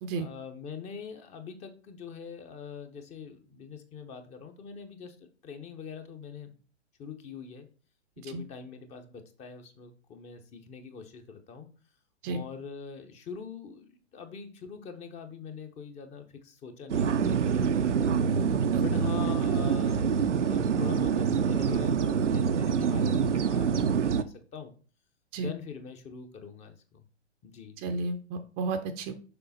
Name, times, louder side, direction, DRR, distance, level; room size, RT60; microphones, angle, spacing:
voice 1, 0.1-6.5 7.0-7.7 8.2-11.7 12.3-24.7 25.4-27.0 27.4-27.8, left 6 dB, 20° left, 7 dB, 0.8 m, -44 dB
sound 1, 16.9-24.2, right 6 dB, 80° right, 0.7 m, -26 dB
voice 2, 18.7-19.1 25.3-25.5 27.8-29.1, right 3 dB, 25° right, 8 dB, 0.6 m, -33 dB
6.8 x 5.4 x 4.1 m, 0.38 s
figure-of-eight pair, 115°, 36 cm